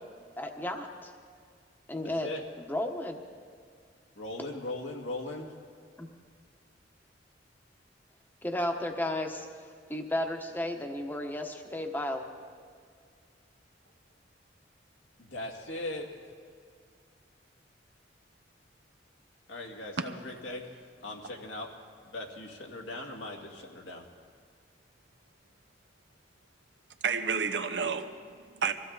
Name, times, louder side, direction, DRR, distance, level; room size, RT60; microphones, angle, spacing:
voice 1, 0.4-1.1 1.9-2.3 2.7-3.2 6.0-6.1 8.4-12.3, left 1 dB, 10° left, 4 dB, 1.1 m, -33 dB
voice 2, 4.2-5.5 15.2-16.1 19.5-20.7 21.0-21.7 22.0-24.1, left 2 dB, 85° left, 0 dB, 2.1 m, -39 dB
voice 3, 27.0-28.7, right 5 dB, 70° right, 8 dB, 0.9 m, -31 dB
23.0 x 15.0 x 4.0 m, 2.1 s
head